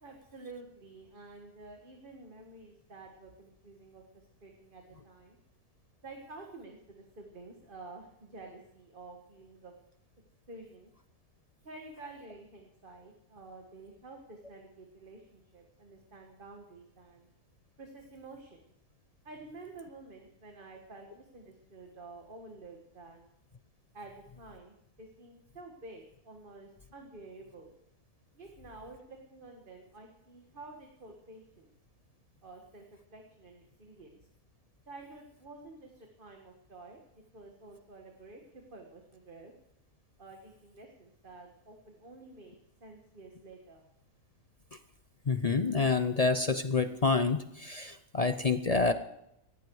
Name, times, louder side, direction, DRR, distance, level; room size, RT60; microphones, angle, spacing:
voice 1, 0.0-5.4 6.0-9.7 10.5-10.9 11.6-17.3 17.8-18.6 19.2-23.3 23.9-27.7 28.3-31.8 32.4-32.8 33.1-34.2 34.9-37.0 37.3-39.5 40.2-42.5 42.8-43.8, right 2 dB, 35° right, 2 dB, 1.9 m, -50 dB
voice 2, 45.3-48.9, left 4 dB, 45° left, 10 dB, 0.5 m, -28 dB
18.5 x 14.5 x 4.8 m, 0.79 s
omnidirectional pair, 1.6 m